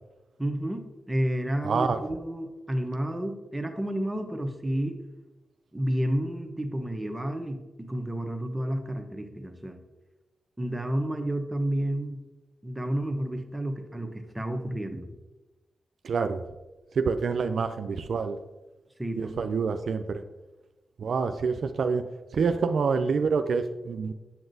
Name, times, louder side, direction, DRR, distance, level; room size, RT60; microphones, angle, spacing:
voice 1, 0.4-5.0 5.7-9.8 10.6-12.2 12.6-15.1 19.0-19.4, right 1 dB, 15° right, 4 dB, 0.8 m, -30 dB
voice 2, 1.6-2.0 16.0-16.4 16.9-18.4 19.2-20.2 21.0-22.0 22.3-24.1, right 5 dB, 70° right, 8 dB, 0.3 m, -27 dB
7.7 x 5.9 x 2.6 m, 1.1 s
supercardioid pair, 50°, 0 cm